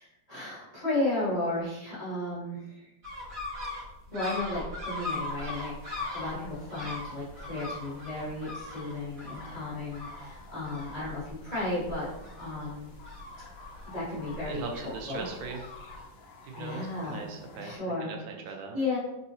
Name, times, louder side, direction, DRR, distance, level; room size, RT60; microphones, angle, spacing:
voice 1, 0.0-2.9 4.1-12.1 12.4-12.9 13.9-14.8 15.1-15.2 16.6-17.3 17.6-18.1 18.7-19.0, left 2 dB, 20° left, -10 dB, 1.5 m, -34 dB
sound 1, 3.0-16.1, left 2 dB, 50° right, 1.5 m, -40 dB
sound 2, 5.1-17.8, left 3 dB, 80° left, 1.4 m, -51 dB
voice 2, 14.4-15.6 16.4-17.8 18.0-18.8, right 4 dB, 85° right, 2 dB, 1.4 m, -39 dB
3.7 x 2.8 x 2.7 m, 0.93 s
omnidirectional pair, 2.1 m